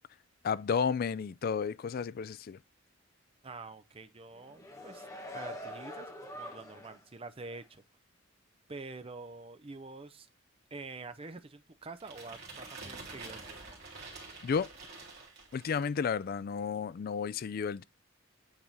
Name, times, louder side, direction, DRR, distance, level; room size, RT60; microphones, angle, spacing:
voice 1, 0.4-2.6 14.4-14.7 15.5-17.8, left 6 dB, 45° left, 0.3 m, -32 dB
voice 2, 3.4-5.1 5.3-7.8 8.7-10.3 10.7-13.6, right 3 dB, 25° right, 0.6 m, -46 dB
sound 1, 4.3-7.1 7.5-7.6, equal, 15° left, 1.2 m, -45 dB
sound 2, 12.0-16.0, right 3 dB, 50° right, 2.5 m, -47 dB
8.8 x 3.6 x 4.0 m
head